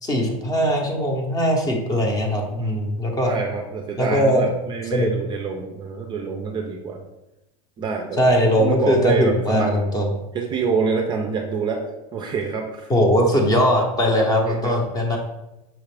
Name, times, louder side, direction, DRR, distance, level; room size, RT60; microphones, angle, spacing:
voice 1, 0.0-3.3 4.0-4.5 4.9-5.1 8.2-10.1 12.9-15.2, equal, 20° left, 2 dB, 0.7 m, -20 dB
voice 2, 2.5-2.9 3.2-7.0 7.8-8.2 8.6-9.7 10.3-11.8 12.1-12.9 14.5-14.7, right 5 dB, 25° right, 2 dB, 0.4 m, -26 dB
5.7 x 2.4 x 3.3 m, 0.94 s
supercardioid pair, 140°, 19 cm